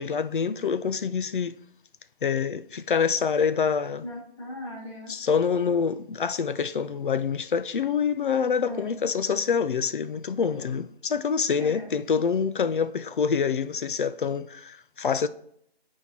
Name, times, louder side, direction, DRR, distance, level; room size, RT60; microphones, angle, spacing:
voice 1, 0.0-1.6 2.2-4.0 5.1-15.3, left 6 dB, 55° left, 0.4 m, -26 dB
voice 2, 4.0-5.1 8.7-8.9 11.6-11.9, left 1 dB, 30° left, 2.0 m, -38 dB
11.0 x 4.4 x 2.9 m
hypercardioid pair, 165°, 31 cm